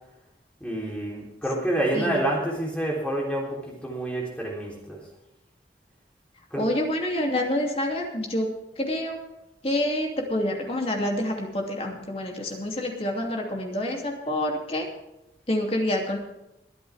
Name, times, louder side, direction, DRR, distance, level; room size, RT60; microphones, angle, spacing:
voice 1, 0.6-5.0 6.5-6.7, right 1 dB, 5° left, -3 dB, 3.6 m, -28 dB
voice 2, 1.9-2.3 6.6-8.5 8.8-9.2 9.6-14.9 15.5-16.2, left 1 dB, 35° left, 1 dB, 2.8 m, -27 dB
21.5 x 10.5 x 3.6 m, 0.89 s
head